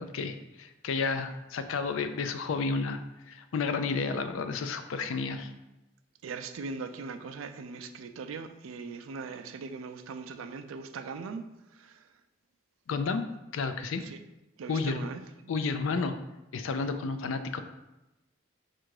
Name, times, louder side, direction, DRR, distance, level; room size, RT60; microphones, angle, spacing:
voice 1, 0.0-3.0 3.3-5.5 12.9-13.2 13.5-14.0 14.7-15.1 15.5-16.1 16.5-17.6, left 4 dB, 80° left, 8 dB, 0.4 m, -31 dB
voice 2, 6.2-11.4 11.8-11.9 14.0-14.2 14.6-15.2, right 4 dB, 85° right, 9 dB, 0.4 m, -40 dB
4.4 x 2.5 x 4.6 m, 0.97 s
head